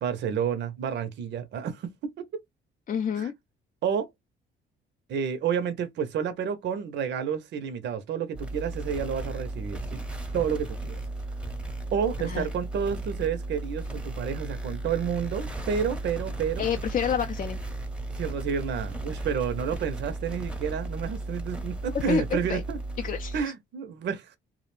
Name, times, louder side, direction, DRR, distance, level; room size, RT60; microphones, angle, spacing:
voice 1, 0.0-1.9 3.2-3.3 3.8-4.1 5.1-10.0 10.3-11.0 11.9-16.7 18.1-22.8 23.3-24.4, right 7 dB, 65° right, 0.5 m, -30 dB
voice 2, 2.9-3.3 12.2-12.5 16.6-17.6 21.9-22.6 23.0-23.5, left 7 dB, 45° left, 0.4 m, -28 dB
sound 1, 8.3-23.4, right 2 dB, 5° right, 0.7 m, -35 dB
2.4 x 2.0 x 3.0 m
cardioid pair, 90°, 20 cm